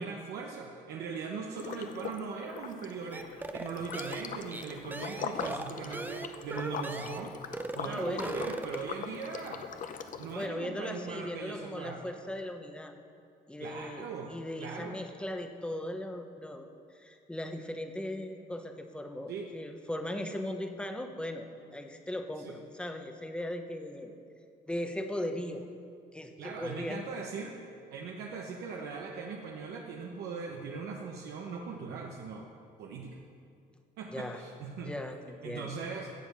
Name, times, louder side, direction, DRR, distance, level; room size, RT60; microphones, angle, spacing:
voice 1, 0.0-7.4 7.7-9.6 10.2-12.0 13.6-14.3 14.6-15.0 19.3-19.5 22.4-22.6 26.4-27.6 27.9-32.5 32.8-33.2 34.0-34.9 35.4-36.1, right 5 dB, 75° right, 0 dB, 1.1 m, -40 dB
Liquid, 1.6-2.2 2.5-10.5, left 7 dB, 50° left, 0.8 m, -41 dB
sound 1, 3.1-7.3 7.5-7.8 8.1-8.9, right 2 dB, 10° right, 0.6 m, -39 dB
voice 2, 7.8-8.4 10.4-12.9 13.5-16.7 16.9-24.1 24.7-25.6 26.1-27.0 34.1-34.4 34.8-35.7, left 1 dB, 5° left, 5 dB, 1.0 m, -38 dB
16.0 x 7.1 x 5.5 m, 2.4 s
cardioid pair, 110°, 17 cm